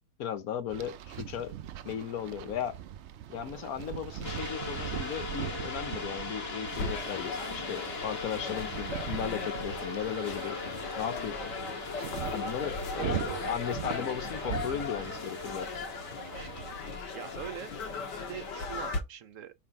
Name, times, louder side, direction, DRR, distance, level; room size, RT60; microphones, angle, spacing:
voice 1, 0.2-1.5 1.8-2.8 3.3-11.6 12.3-15.8, left 9 dB, 60° left, 1.2 m, -36 dB
sound 1, 0.7-16.7, right 11 dB, 75° right, 0.6 m, -41 dB
sound 2, 4.2-18.9, left 3 dB, 35° left, 1.7 m, -40 dB
sound 3, 6.7-19.0, left 4 dB, 80° left, 2.0 m, -38 dB
voice 2, 12.7-13.5 16.9-17.7 18.2-19.5, right 9 dB, 55° right, 1.1 m, -42 dB
5.6 x 4.4 x 5.6 m
omnidirectional pair, 1.8 m